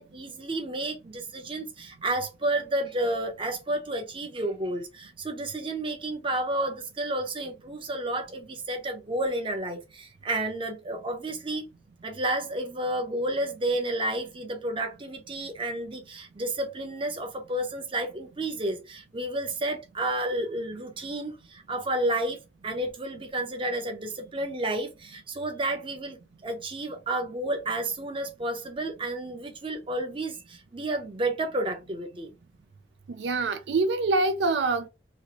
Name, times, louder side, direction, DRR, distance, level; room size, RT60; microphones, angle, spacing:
voice 1, 0.0-11.7 12.0-22.4 22.6-32.3, right 1 dB, 30° right, 0.7 m, -31 dB
voice 2, 33.2-34.9, right 3 dB, 75° right, 0.4 m, -25 dB
3.0 x 2.5 x 2.9 m
head